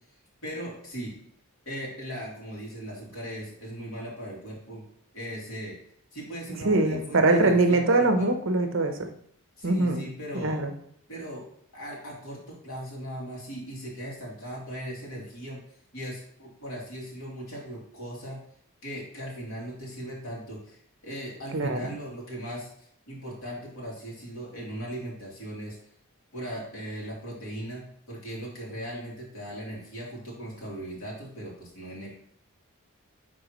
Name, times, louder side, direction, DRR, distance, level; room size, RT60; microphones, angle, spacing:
voice 1, 0.4-1.1 1.6-4.8 5.1-5.8 6.1-8.3 9.6-10.6 11.1-11.4 11.7-15.6 15.9-18.4 18.8-25.8 26.3-32.1, equal, 65° left, -4 dB, 2.8 m, -38 dB
voice 2, 6.6-9.1 9.6-10.1 10.3-10.7 21.5-21.9, right 2 dB, 60° right, 5 dB, 0.8 m, -23 dB
10.0 x 4.1 x 3.1 m, 0.68 s
head